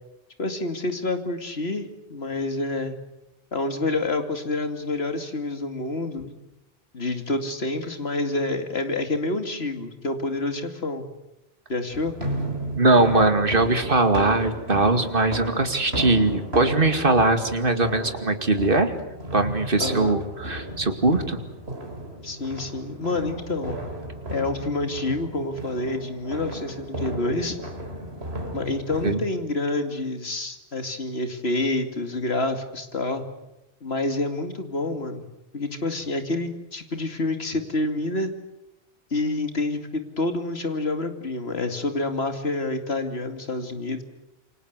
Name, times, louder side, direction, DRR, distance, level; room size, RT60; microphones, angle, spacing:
voice 1, 0.4-3.0 3.5-6.3 6.9-11.1 11.7-12.1 19.8-20.2 22.2-23.8 24.3-27.6 28.5-33.2 33.8-35.2 35.5-38.3 39.1-44.0, left 2 dB, 75° left, 7 dB, 2.8 m, -28 dB
sound 1, 11.9-29.1, right 1 dB, 80° right, 4.1 m, -34 dB
voice 2, 12.8-18.9 19.3-21.4 29.0-29.2, right 2 dB, 60° right, 7 dB, 2.6 m, -21 dB
28.0 x 25.5 x 8.2 m, 0.92 s
omnidirectional pair, 1.1 m